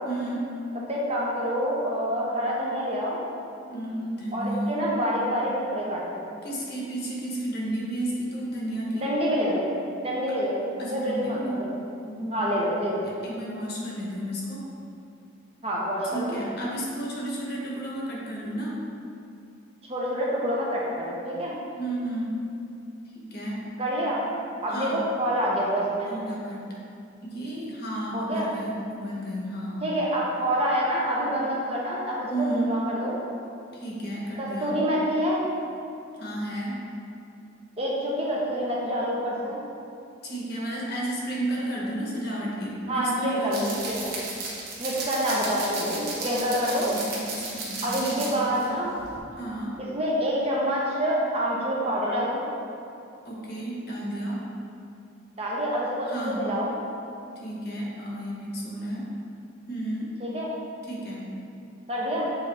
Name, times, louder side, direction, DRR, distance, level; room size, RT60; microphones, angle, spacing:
voice 1, 0.0-0.5 3.7-4.8 6.4-9.1 10.8-11.6 12.0-12.6 13.0-14.6 16.0-18.8 21.7-22.3 23.1-23.6 24.7-25.0 26.0-26.6 27.2-29.8 32.3-32.7 33.7-34.8 36.2-36.8 40.2-43.8 47.1-48.7 49.4-49.8 53.2-54.4 56.1-56.4 57.3-59.0 59.7-60.1 60.8-61.2, right 1 dB, 50° left, -4 dB, 1.1 m, -32 dB
voice 2, 0.9-3.2 4.3-6.2 8.9-9.6 10.0-10.6 10.8-11.7 12.3-13.0 15.6-16.4 19.9-21.5 23.8-24.2 24.6-26.1 28.1-28.5 29.8-33.2 34.4-35.4 37.8-39.6 42.9-43.6 43.9-44.1 44.8-46.9 47.8-48.9 49.8-52.4 55.4-56.7 60.2-60.5 61.9-62.3, equal, 30° right, -5 dB, 0.8 m, -27 dB
sound 1, 43.5-48.7 49.0-49.2, right 3 dB, 50° right, 1.1 m, -34 dB
7.3 x 3.8 x 3.4 m, 2.6 s
head